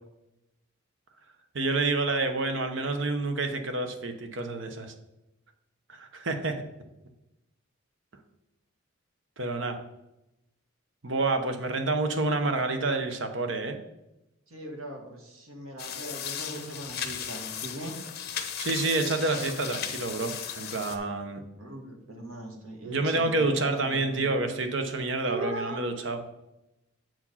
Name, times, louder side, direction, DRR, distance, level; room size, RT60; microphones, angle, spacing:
voice 1, 1.5-4.9 5.9-6.6 9.4-9.8 11.0-13.8 18.6-21.4 22.8-26.2, right 3 dB, 60° right, 7 dB, 1.0 m, -28 dB
voice 2, 14.5-18.0 21.6-24.4 25.3-25.8, right 1 dB, 90° right, 1 dB, 1.9 m, -39 dB
sound 1, 15.8-21.0, left 8 dB, 50° left, 0.9 m, -36 dB
7.5 x 4.9 x 5.6 m, 0.92 s
head